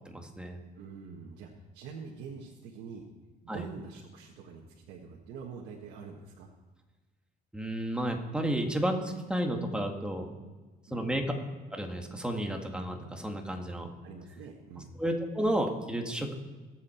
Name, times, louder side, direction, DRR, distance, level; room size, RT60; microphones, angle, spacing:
voice 1, 0.0-0.6 3.5-3.6 7.5-10.3 10.9-11.2 11.7-13.9 15.0-16.4, right 1 dB, 5° right, 3 dB, 1.8 m, -32 dB
voice 2, 0.7-3.0 3.4-6.5 10.9-11.1 14.0-15.0, right 5 dB, 85° right, -2 dB, 1.5 m, -45 dB
21.0 x 7.6 x 4.4 m, 1.3 s
cardioid pair, 110°, 17 cm